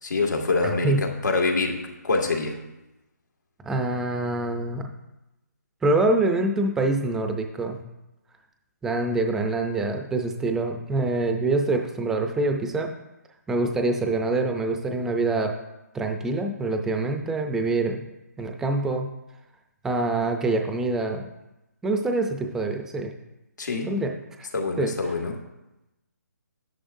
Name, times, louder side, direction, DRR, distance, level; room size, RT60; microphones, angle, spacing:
voice 1, 0.0-2.6 23.6-24.0 24.5-25.4, left 3 dB, 85° left, 2 dB, 2.0 m, -26 dB
voice 2, 3.6-4.9 5.8-7.8 8.8-12.9 13.5-15.5 15.9-18.0 18.4-19.1 19.8-21.2 21.8-23.1 23.9-24.1 24.4-24.5 24.8-24.9, right 2 dB, 5° right, 4 dB, 0.5 m, -25 dB
12.0 x 10.0 x 2.7 m, 0.97 s
hypercardioid pair, 165°, 9 cm